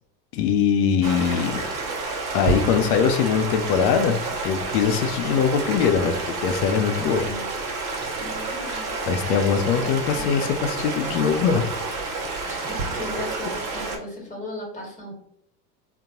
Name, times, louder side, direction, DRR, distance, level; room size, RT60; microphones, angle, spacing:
voice 1, 0.3-1.7 2.3-4.2 4.4-7.2 9.1-11.6, left 7 dB, 60° left, 8 dB, 0.7 m, -22 dB
Stream, 1.0-14.0, right 3 dB, 45° right, 1.0 m, -29 dB
voice 2, 7.0-7.5 8.1-8.9 9.8-10.4 12.4-15.1, left 1 dB, 15° left, -2 dB, 1.3 m, -37 dB
3.8 x 2.2 x 2.8 m, 0.67 s
hypercardioid pair, 95°, 50 cm